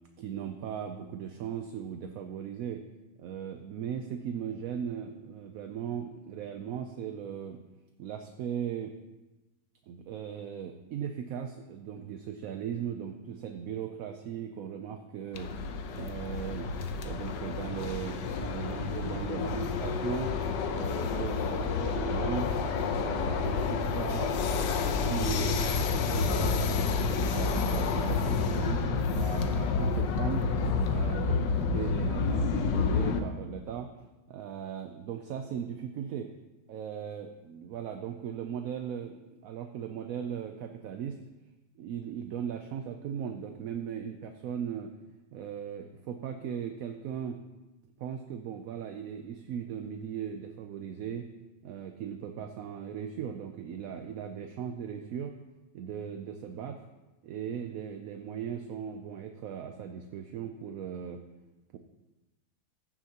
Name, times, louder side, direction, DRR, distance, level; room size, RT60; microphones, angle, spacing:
voice 1, 0.2-2.8 3.2-7.6 8.0-8.9 9.9-15.5 15.9-16.7 17.0-20.3 20.7-22.5 22.9-25.6 26.0-30.5 30.9-33.9 34.3-36.3 36.7-41.2 41.8-44.9 45.3-47.4 48.0-51.3 51.6-55.3 55.7-56.9 57.2-61.2 61.7-61.8, right 8 dB, 70° right, 6 dB, 0.9 m, -38 dB
sound 1, 15.3-33.2, left 5 dB, 85° left, 1.4 m, -29 dB
14.5 x 7.1 x 2.9 m, 1.1 s
omnidirectional pair, 1.8 m